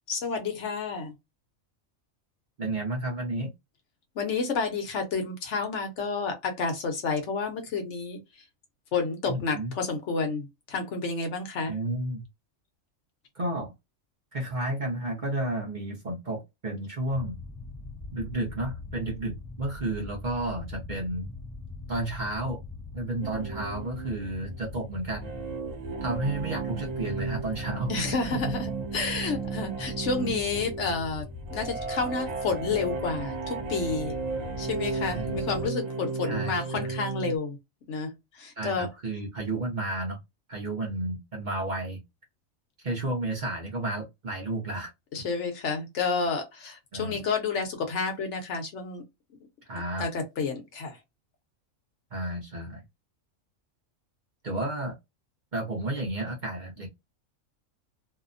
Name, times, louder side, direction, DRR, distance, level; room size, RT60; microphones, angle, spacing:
voice 1, 0.1-1.1 4.1-8.4 8.9-11.8 27.9-34.1 34.6-37.6 37.9-38.9 45.1-49.0 50.0-51.0, left 4 dB, 65° left, 1.1 m, -30 dB
voice 2, 2.6-3.5 9.3-9.7 11.7-12.2 13.4-13.7 14.3-17.4 18.1-21.3 21.9-22.6 22.9-25.3 26.0-27.9 28.3-28.5 30.2-30.3 35.1-35.4 36.3-36.9 38.6-40.2 40.5-42.0 42.8-44.9 46.9-47.2 49.7-50.1 52.1-52.8 54.4-54.9 55.5-56.9, right 2 dB, 45° right, 0.7 m, -32 dB
sound 1, 17.1-35.7, left 3 dB, 15° left, 0.7 m, -42 dB
sound 2, 23.2-37.4, right 4 dB, 65° right, 0.4 m, -35 dB
2.7 x 2.1 x 2.4 m
omnidirectional pair, 1.4 m